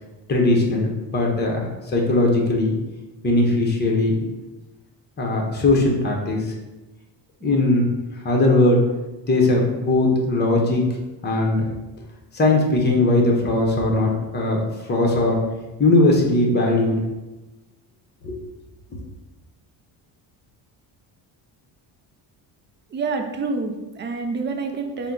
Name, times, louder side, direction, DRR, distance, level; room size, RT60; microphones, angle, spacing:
voice 1, 0.3-2.7 3.2-4.2 5.2-6.5 7.4-7.9 8.2-8.8 9.3-10.8 11.2-11.7 12.3-14.6 14.9-15.4 15.8-17.0 18.2-18.4, left 2 dB, 20° left, 0 dB, 0.8 m, -19 dB
voice 2, 22.9-25.1, right 4 dB, 25° right, 5 dB, 0.4 m, -27 dB
4.2 x 2.2 x 3.8 m, 1.1 s
cardioid pair, 105°, 48 cm